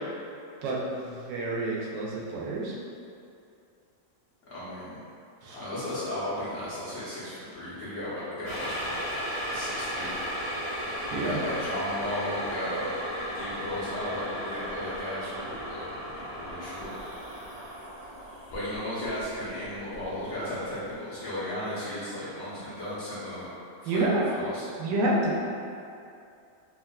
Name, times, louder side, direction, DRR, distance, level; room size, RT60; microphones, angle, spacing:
voice 1, 0.6-2.7 5.4-5.6 11.1-11.4 23.9-24.3 24.8-25.4, right 2 dB, 80° right, -3 dB, 1.2 m, -28 dB
voice 2, 4.5-5.0 5.5-9.0 9.5-10.1 11.2-12.9 13.3-15.8 16.1-16.9 18.5-23.5 23.8-24.7, left 1 dB, 60° left, -11 dB, 1.1 m, -35 dB
sound 1, 8.4-20.5 20.9-21.0, equal, 35° right, 0.4 m, -35 dB
3.5 x 2.5 x 2.2 m, 2.5 s
omnidirectional pair, 1.9 m